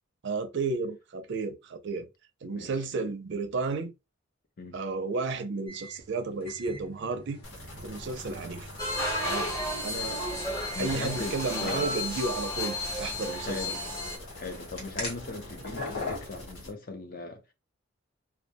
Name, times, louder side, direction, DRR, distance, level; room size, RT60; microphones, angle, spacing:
voice 1, 0.2-2.1 2.4-3.9 4.7-7.4 7.8-8.7 9.2-10.2 10.8-13.8, right 3 dB, 55° right, 0.4 m, -33 dB
sound 1, 5.7-16.4, left 2 dB, 90° left, 1.1 m, -43 dB
sound 2, 7.4-16.7, left 1 dB, 70° left, 1.1 m, -46 dB
sound 3, 8.8-14.2, left 1 dB, 15° left, 0.9 m, -33 dB
voice 2, 10.6-12.1 13.3-13.8 14.3-17.5, left 3 dB, 45° left, 0.5 m, -39 dB
2.2 x 2.1 x 2.8 m
head